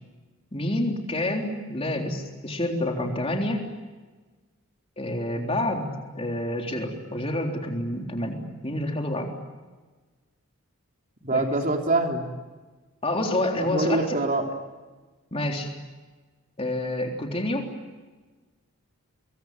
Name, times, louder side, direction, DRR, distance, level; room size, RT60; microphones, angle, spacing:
voice 1, 0.5-3.7 5.0-5.9 6.1-9.3 11.3-11.4 13.0-14.1 15.3-15.7 16.6-17.7, left 1 dB, 25° left, 2 dB, 3.7 m, -28 dB
voice 2, 11.2-12.3 13.7-14.5, right 2 dB, 35° right, 3 dB, 3.2 m, -24 dB
25.0 x 23.0 x 9.5 m, 1.3 s
head